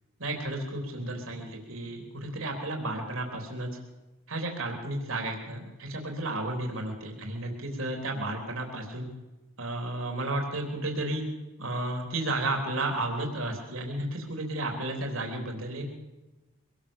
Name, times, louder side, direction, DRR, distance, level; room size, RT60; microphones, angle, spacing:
voice 1, 0.2-3.7 4.3-9.1 9.6-11.2 11.6-15.9, right 2 dB, 85° right, 2 dB, 3.6 m, -33 dB
24.5 x 19.5 x 7.2 m, 1.1 s
head